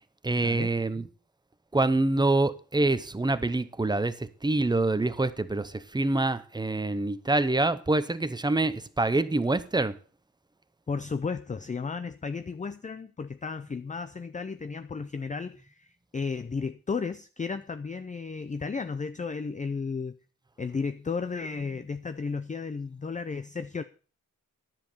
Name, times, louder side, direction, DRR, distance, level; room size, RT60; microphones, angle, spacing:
voice 1, 0.2-1.1 1.7-10.0, right 2 dB, 15° right, 0.7 m, -26 dB
voice 2, 10.9-20.1 20.6-23.8, left 5 dB, 25° left, 0.5 m, -34 dB
10.5 x 7.5 x 6.6 m
wide cardioid pair, 125°, 32 cm